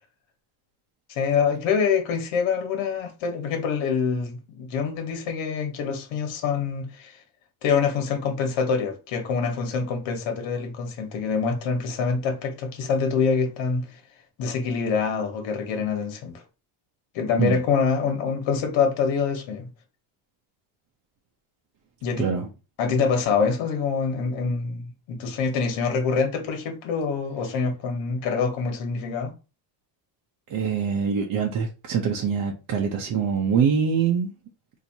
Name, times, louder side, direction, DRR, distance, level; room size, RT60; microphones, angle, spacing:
voice 1, 1.1-7.2 7.6-13.9 14.4-16.4 17.1-19.7 22.0-22.2 22.8-29.3, left 5 dB, 70° left, 1.4 m, -25 dB
voice 2, 22.2-22.5 30.5-34.3, right 6 dB, 45° right, 0.7 m, -24 dB
4.3 x 2.8 x 2.7 m
cardioid pair, 145°, 46 cm